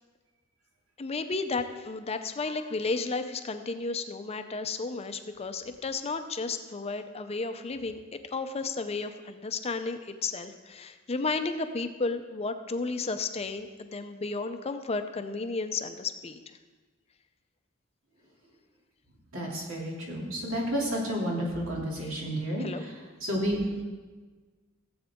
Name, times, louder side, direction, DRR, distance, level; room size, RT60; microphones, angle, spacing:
voice 1, 1.0-8.0 8.3-16.4 22.6-22.8, left 3 dB, 30° left, 8 dB, 0.5 m, -33 dB
voice 2, 19.3-22.9 23.2-23.6, equal, 80° right, -3 dB, 2.7 m, -31 dB
16.5 x 7.9 x 3.6 m, 1.4 s
head